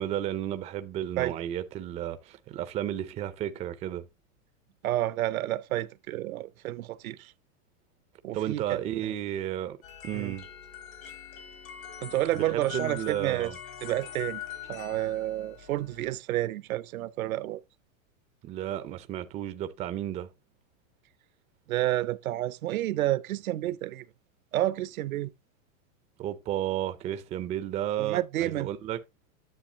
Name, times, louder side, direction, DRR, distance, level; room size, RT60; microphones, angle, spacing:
voice 1, 0.0-4.1 8.3-9.8 10.0-10.5 12.3-13.6 18.4-20.3 26.2-29.0, right 11 dB, 15° right, 0.4 m, -33 dB
voice 2, 4.8-7.3 8.2-9.1 10.1-10.4 12.0-13.5 13.8-14.4 14.7-17.6 21.7-24.1 24.5-25.3 28.0-28.7, right 14 dB, 80° right, 0.8 m, -30 dB
sound 1, 9.8-16.2, left 9 dB, 75° left, 2.9 m, -43 dB
10.0 x 6.9 x 2.7 m
supercardioid pair, 140°, 41 cm